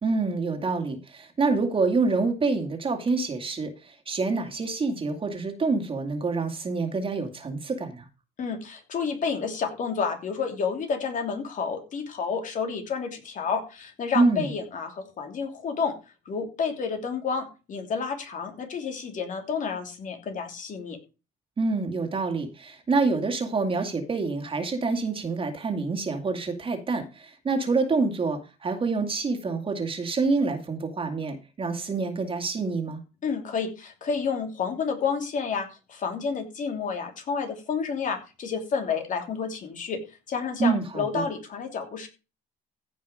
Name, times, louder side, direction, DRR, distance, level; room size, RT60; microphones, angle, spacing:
voice 1, 0.0-8.1 14.1-14.5 21.6-33.0 40.6-41.2, right 4 dB, 30° right, 6 dB, 2.4 m, -27 dB
voice 2, 8.4-15.9 16.2-21.0 33.2-40.0 40.3-42.1, left 5 dB, 50° left, 4 dB, 3.1 m, -30 dB
15.5 x 5.7 x 5.1 m, 0.31 s
cardioid pair, 110°, 17 cm